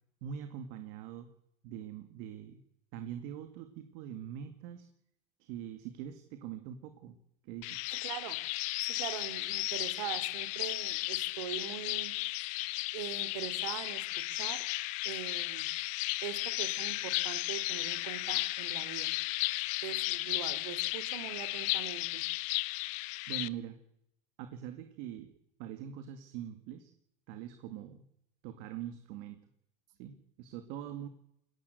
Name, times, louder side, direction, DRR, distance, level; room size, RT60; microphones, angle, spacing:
voice 1, 0.2-1.3 1.6-2.6 2.9-4.9 5.4-7.2 7.4-7.8 23.3-23.8 24.4-25.3 25.6-26.9 27.3-28.0 28.4-29.4 30.0-31.1, right 10 dB, 55° right, 8 dB, 2.2 m, -43 dB
sound 1, 7.6-23.5, left 20 dB, 50° left, 0.9 m, -35 dB
voice 2, 7.9-8.4 8.8-12.1 12.9-14.6 15.0-15.7 16.2-19.1 19.8-22.2, right 12 dB, 85° right, 12 dB, 3.4 m, -42 dB
22.5 x 17.5 x 7.9 m, 0.78 s
supercardioid pair, 160°, 16 cm